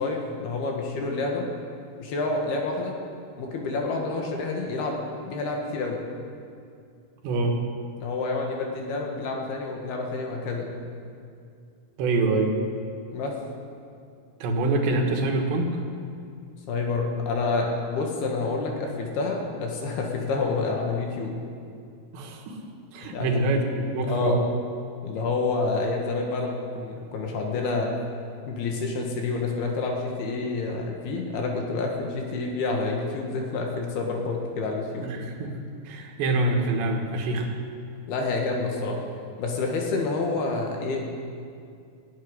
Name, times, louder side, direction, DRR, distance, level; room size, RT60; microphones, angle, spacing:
voice 1, 0.0-1.5 2.0-3.0 3.4-6.0 8.0-10.7 13.1-13.3 16.7-21.3 23.1-23.3 24.1-24.4 25.0-27.9 28.5-35.1 38.1-39.0 39.4-41.1, left 3 dB, 70° left, 1 dB, 3.5 m, -28 dB
voice 2, 7.2-7.6 12.0-12.6 14.4-15.8 22.1-22.6 22.9-24.4 35.0-37.5, right 2 dB, 80° right, 2 dB, 3.7 m, -25 dB
16.0 x 8.7 x 9.8 m, 2.4 s
omnidirectional pair, 5.0 m